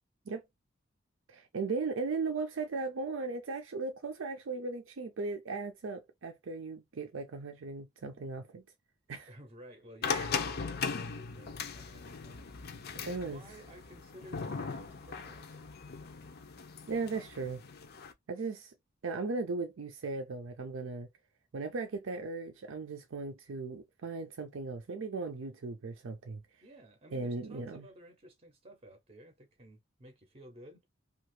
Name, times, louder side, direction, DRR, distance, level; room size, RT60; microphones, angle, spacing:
voice 1, 1.3-8.6 9.1-9.3 10.1-10.3 13.0-13.4 16.9-17.6 18.3-18.7 19.0-21.1 21.5-26.4 27.1-27.8, right 4 dB, 75° right, 0.5 m, -37 dB
voice 2, 9.3-12.4 13.0-15.7 26.6-30.8, right 1 dB, 30° right, 0.7 m, -54 dB
sound 1, 10.0-18.1, left 5 dB, 55° left, 0.6 m, -39 dB
2.8 x 2.4 x 3.0 m
head